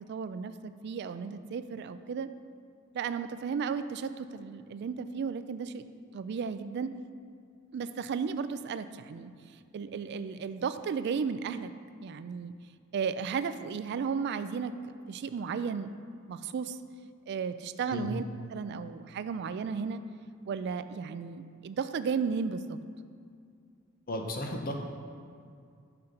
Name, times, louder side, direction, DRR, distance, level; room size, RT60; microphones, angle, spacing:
voice 1, 0.1-0.5 0.8-2.3 2.9-5.8 6.1-6.9 7.7-9.3 9.7-11.7 12.0-12.5 12.9-14.7 15.1-15.9 16.3-16.8 17.3-18.2 18.5-20.0 20.5-22.8, right 6 dB, 55° right, 11 dB, 0.3 m, -34 dB
voice 2, 24.1-24.7, left 1 dB, 45° left, 2 dB, 0.8 m, -34 dB
5.8 x 5.7 x 5.1 m, 2.3 s
head